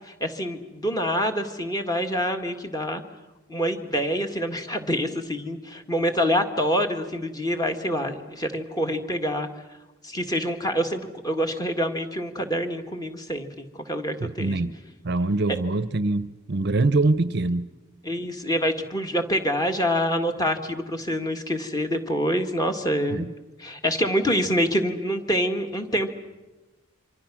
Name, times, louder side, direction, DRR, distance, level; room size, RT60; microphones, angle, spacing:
voice 1, 0.1-3.0 3.5-9.5 10.0-14.6 15.5-15.6 18.0-23.3 23.6-26.1, equal, 15° left, 5 dB, 1.8 m, -26 dB
voice 2, 14.2-14.7 15.0-17.7 23.1-23.3, right 2 dB, 50° right, 14 dB, 0.7 m, -24 dB
27.5 x 25.0 x 6.2 m, 1.1 s
head